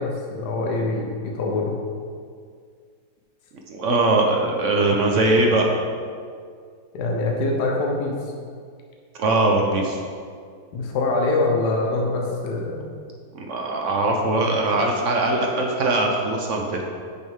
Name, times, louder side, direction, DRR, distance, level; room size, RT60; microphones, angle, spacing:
voice 1, 0.0-1.8 6.9-8.2 10.7-12.9 14.4-14.5, left 2 dB, 65° left, 0 dB, 1.5 m, -24 dB
voice 2, 3.7-5.7 9.2-10.0 13.3-16.8, right 2 dB, 55° right, 0 dB, 0.9 m, -21 dB
8.8 x 6.3 x 3.7 m, 2.1 s
omnidirectional pair, 2.1 m